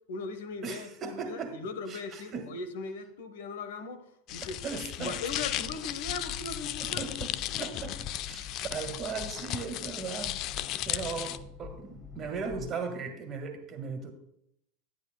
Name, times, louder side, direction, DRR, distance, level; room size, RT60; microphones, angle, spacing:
voice 1, 0.1-4.0 4.3-4.6 5.0-7.2, left 4 dB, 75° left, 9 dB, 1.0 m, -39 dB
voice 2, 0.6-1.5 1.9-2.5 4.6-5.2 6.8-7.3 7.6-10.4 10.8-14.1, right 5 dB, 35° right, 6 dB, 1.7 m, -37 dB
sound 1, 4.3-11.4, left 13 dB, 50° left, 0.4 m, -35 dB
sound 2, 5.3-12.7, left 5 dB, 10° left, 1.0 m, -46 dB
11.0 x 9.7 x 2.3 m, 0.77 s
hypercardioid pair, 100°, 0 cm